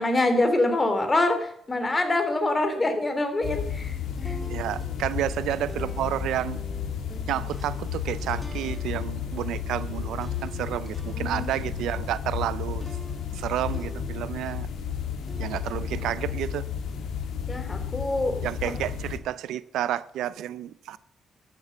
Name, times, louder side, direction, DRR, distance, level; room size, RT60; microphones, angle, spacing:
voice 1, 0.0-4.0 4.2-4.4 11.1-11.5 17.5-18.4 18.6-18.7, left 2 dB, 25° left, 2.9 m, -25 dB
sound 1, 3.4-19.2, left 7 dB, 80° left, 1.8 m, -32 dB
sound 2, 4.0-14.6 15.1-17.4, right 1 dB, ahead, 3.1 m, -46 dB
voice 2, 4.5-6.6 7.3-12.9 13.3-14.7 15.4-16.7 18.4-21.0, right 12 dB, 90° right, 0.5 m, -30 dB
13.0 x 7.7 x 7.1 m
cardioid pair, 80°, 0 cm